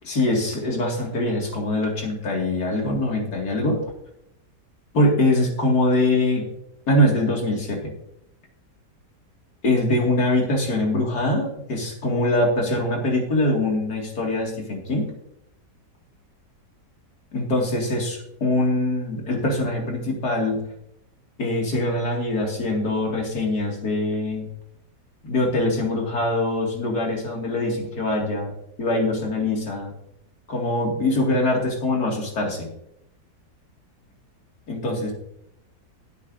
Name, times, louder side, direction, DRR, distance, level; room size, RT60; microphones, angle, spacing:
voice 1, 0.1-3.8 4.9-6.5 6.9-7.9 9.6-15.1 17.3-20.6 21.4-24.5 25.2-28.5 28.8-29.9 30.5-32.7 34.7-35.1, left 1 dB, 65° left, 0 dB, 2.8 m, -23 dB
16.5 x 8.2 x 2.6 m, 0.79 s
omnidirectional pair, 1.8 m